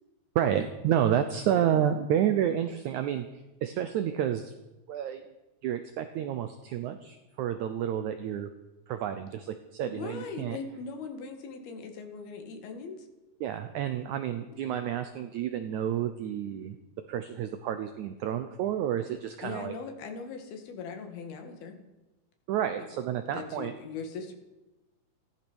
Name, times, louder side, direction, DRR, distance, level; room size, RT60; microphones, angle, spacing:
voice 1, 0.4-3.3 3.6-4.5 4.9-5.2 5.6-8.5 8.9-10.6 13.4-16.8 17.1-19.7 22.5-23.7, right 10 dB, 75° right, 9 dB, 1.7 m, -30 dB
voice 2, 9.8-13.1 14.5-14.6 19.4-21.8 23.3-24.3, left 4 dB, 80° left, 5 dB, 3.8 m, -40 dB
15.0 x 13.5 x 6.2 m, 1.0 s
omnidirectional pair, 4.3 m